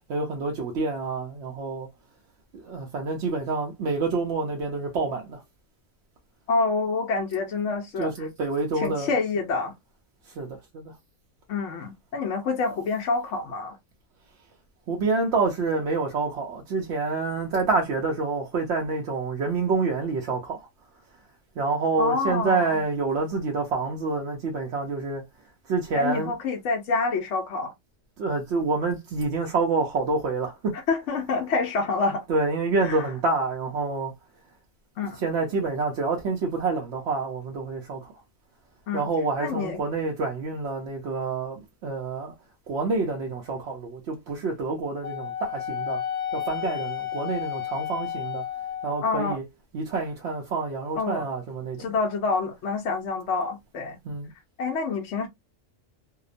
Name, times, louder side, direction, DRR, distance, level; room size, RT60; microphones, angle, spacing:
voice 1, 0.1-1.9 2.5-5.4 8.0-9.1 10.2-11.0 14.9-20.7 21.6-25.2 25.6-26.3 28.2-30.7 32.3-34.1 35.1-38.1 38.9-42.3 42.7-46.0 46.3-48.4 48.8-49.4 49.7-51.9 54.0-54.3, right 3 dB, 65° right, 0.8 m, -27 dB
voice 2, 6.5-8.3 8.8-9.7 11.5-13.8 22.0-22.7 26.0-27.7 30.9-32.3 32.8-33.0 35.0-35.2 38.9-39.1 39.4-39.8 49.0-49.4 51.0-51.2 51.8-54.0 54.6-55.3, left 4 dB, 70° left, 0.9 m, -27 dB
Wind instrument woodwind instrument, 45.0-49.2, left 10 dB, 20° left, 0.5 m, -32 dB
2.8 x 2.0 x 2.4 m
omnidirectional pair, 1.4 m